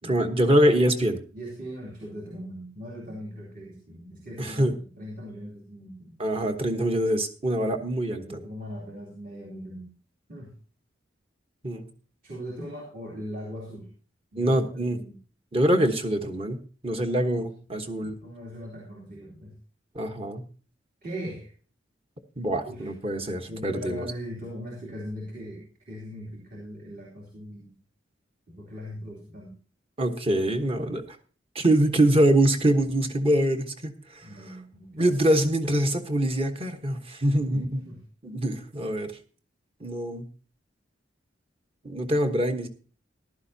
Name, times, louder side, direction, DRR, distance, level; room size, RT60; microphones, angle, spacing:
voice 1, 0.0-1.2 4.4-4.7 6.2-8.4 11.6-11.9 14.3-15.0 15.5-18.2 19.9-20.4 22.4-24.1 30.0-31.0 31.5-34.3 34.9-37.9 38.2-39.1 39.8-40.2 41.8-42.7, right 1 dB, 30° right, 6 dB, 1.2 m, -24 dB
voice 2, 1.3-6.2 8.1-9.9 10.3-10.5 12.2-13.9 14.3-15.2 17.7-19.6 21.0-21.5 22.7-22.9 23.5-27.7 28.5-29.6 34.2-35.3 37.5-38.0, equal, 45° right, -2 dB, 2.9 m, -40 dB
14.5 x 11.5 x 2.8 m, 0.38 s
head